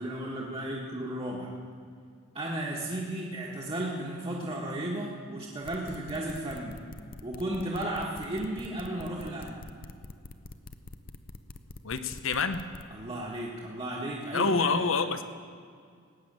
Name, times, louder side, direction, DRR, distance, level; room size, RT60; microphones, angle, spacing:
voice 1, 0.0-1.5 2.3-6.8 7.2-9.6 12.9-14.8, right 1 dB, 30° right, -4 dB, 1.5 m, -34 dB
sound 1, 5.6-12.8, left 2 dB, 45° left, 0.7 m, -45 dB
voice 2, 11.8-12.6 14.3-15.2, left 4 dB, 80° left, 10 dB, 0.8 m, -27 dB
18.0 x 7.2 x 8.9 m, 2.2 s
head